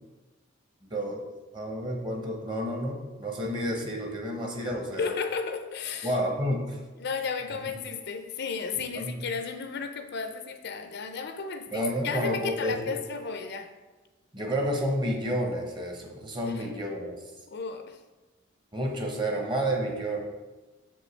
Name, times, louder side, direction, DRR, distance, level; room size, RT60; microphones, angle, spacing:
voice 1, 0.9-1.2 1.5-5.2 6.0-6.8 7.5-7.6 8.9-9.1 11.7-13.0 14.3-17.2 18.7-20.2, equal, 25° right, 1 dB, 1.0 m, -30 dB
voice 2, 5.0-6.2 7.0-13.7 17.5-18.0, left 5 dB, 55° left, 7 dB, 0.5 m, -33 dB
6.5 x 5.3 x 3.2 m, 1.2 s
head